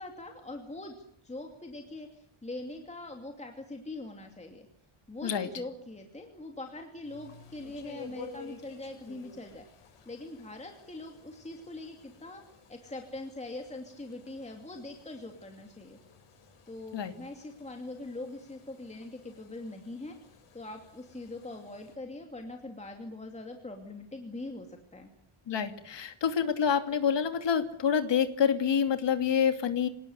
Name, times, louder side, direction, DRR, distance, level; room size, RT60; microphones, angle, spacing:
voice 1, 0.0-4.7 5.1-9.7 10.1-12.4 12.7-16.0 16.7-20.2 20.5-25.1, left 2 dB, 15° left, 3 dB, 2.7 m, -42 dB
sound 1, 7.0-22.0, left 5 dB, 85° left, 6.3 m, -53 dB
voice 2, 25.5-29.9, left 7 dB, 55° left, 8 dB, 2.8 m, -27 dB
27.0 x 18.5 x 9.6 m, 0.68 s
wide cardioid pair, 180°, 50 cm